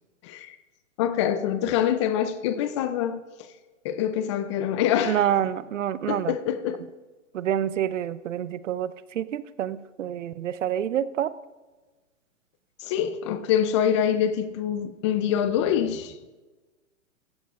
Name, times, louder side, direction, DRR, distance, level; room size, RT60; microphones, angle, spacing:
voice 1, 0.2-0.6 1.0-3.5 3.8-5.2 6.1-6.8 12.8-16.1, left 9 dB, 25° left, 0.5 m, -25 dB
voice 2, 5.0-6.3 7.3-11.3, right 10 dB, 70° right, 0.7 m, -27 dB
16.0 x 15.0 x 2.4 m
hypercardioid pair, 130°, 38 cm